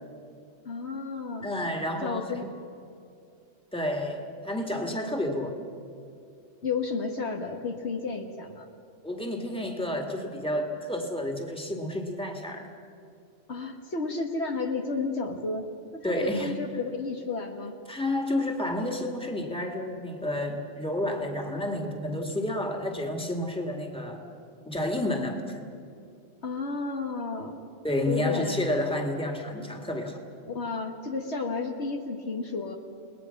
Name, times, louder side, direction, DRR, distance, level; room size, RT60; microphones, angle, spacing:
voice 1, 0.6-1.5 2.0-2.5 6.6-8.7 13.5-17.8 26.4-27.6 28.1-28.6 30.4-32.8, left 4 dB, 65° left, 3 dB, 1.8 m, -32 dB
voice 2, 1.4-2.4 3.7-5.6 9.0-12.7 16.0-16.5 17.9-24.2 24.6-25.6 27.8-30.2, left 1 dB, 5° left, 2 dB, 2.1 m, -30 dB
30.0 x 20.0 x 5.9 m, 2.5 s
omnidirectional pair, 1.2 m